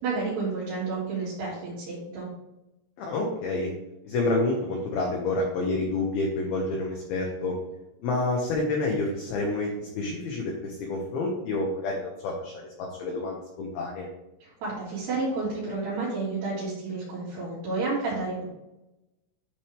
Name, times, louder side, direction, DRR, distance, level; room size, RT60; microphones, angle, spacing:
voice 1, 0.0-2.3 14.4-18.4, right 3 dB, 60° right, -9 dB, 4.2 m, -30 dB
voice 2, 3.0-3.7 4.0-7.5 8.0-14.1, left 2 dB, 80° left, 0 dB, 2.2 m, -28 dB
10.0 x 4.4 x 3.5 m, 0.93 s
omnidirectional pair, 5.7 m